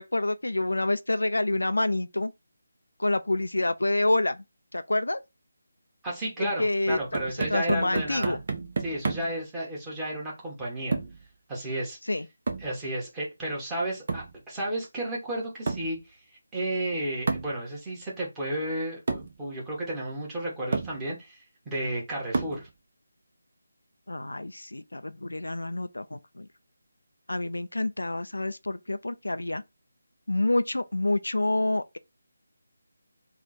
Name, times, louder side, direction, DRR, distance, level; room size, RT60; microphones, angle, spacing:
voice 1, 0.0-2.3 3.0-4.4 4.7-5.2 6.4-7.0 7.5-8.4 12.1-12.3 24.1-26.5 27.3-29.6 30.3-32.0, left 2 dB, 75° left, 0.4 m, -27 dB
voice 2, 6.0-8.4 8.8-11.0 11.5-12.0 12.6-16.2 16.5-22.7, right 1 dB, 10° right, 1.3 m, -32 dB
sound 1, 6.9-9.4 10.9-11.3 12.5-12.8 14.1-14.4 15.7-16.0 17.3-17.6 18.5-18.6 19.1-19.4 20.2-20.3 20.7-21.0 22.3-22.7, right 4 dB, 45° right, 0.9 m, -31 dB
3.5 x 2.4 x 4.2 m
figure-of-eight pair, 155°, 0 cm